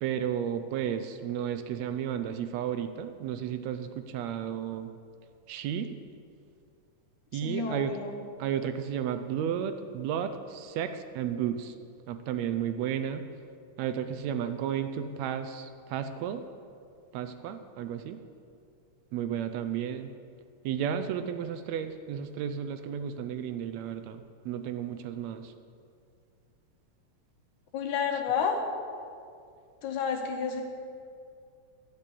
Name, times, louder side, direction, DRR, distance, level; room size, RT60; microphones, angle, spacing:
voice 1, 0.0-4.9 5.5-6.0 7.3-7.9 8.4-11.7 12.1-13.3 13.8-16.5 17.1-18.2 19.1-20.1 20.6-25.5, right 9 dB, 80° right, 9 dB, 1.7 m, -33 dB
voice 2, 7.3-8.2 27.7-28.6 29.8-30.6, left 6 dB, 85° left, 3 dB, 2.6 m, -30 dB
11.5 x 5.9 x 8.3 m, 2.3 s
omnidirectional pair, 3.3 m